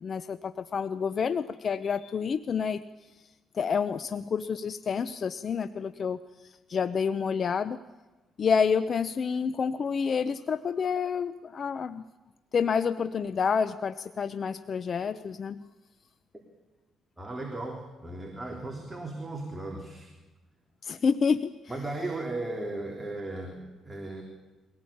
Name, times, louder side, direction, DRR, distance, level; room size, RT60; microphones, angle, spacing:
voice 1, 0.0-2.8 3.5-7.8 8.4-12.0 12.5-15.7 20.8-21.6, left 6 dB, 50° left, 12 dB, 0.8 m, -28 dB
voice 2, 17.2-20.1 21.7-24.2, right 2 dB, 15° right, 1 dB, 3.6 m, -36 dB
23.5 x 18.5 x 8.7 m, 1.2 s
cardioid pair, 90°, 0 cm